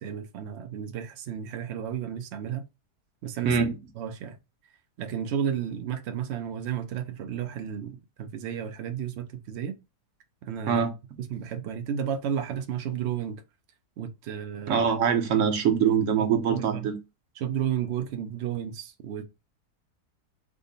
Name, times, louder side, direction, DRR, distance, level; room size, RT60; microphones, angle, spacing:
voice 1, 0.0-2.6 3.2-3.6 4.0-4.4 5.0-9.8 10.4-10.8 11.3-13.4 14.0-14.8 16.2-16.9 17.4-19.3, right 9 dB, 80° right, 0.5 m, -32 dB
voice 2, 3.4-3.8 10.7-10.9 14.7-16.9, right 7 dB, 60° right, 0.9 m, -23 dB
3.6 x 2.1 x 3.8 m
omnidirectional pair, 1.7 m